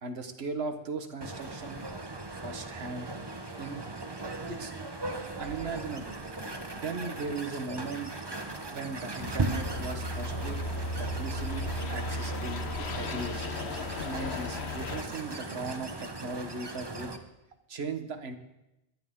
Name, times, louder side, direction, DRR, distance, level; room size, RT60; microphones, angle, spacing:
voice 1, 0.0-1.8 2.4-3.1 3.6-3.8 4.5-4.7 5.4-6.2 6.7-8.1 8.7-10.6 11.0-13.5 14.0-17.1 17.7-18.4, right 3 dB, 75° right, 8 dB, 1.5 m, -38 dB
sound 1, 1.2-17.2, right 2 dB, 25° right, 1.0 m, -38 dB
sound 2, 9.2-15.0, left 2 dB, 80° left, 1.2 m, -35 dB
21.0 x 11.0 x 3.7 m, 0.94 s
omnidirectional pair, 1.1 m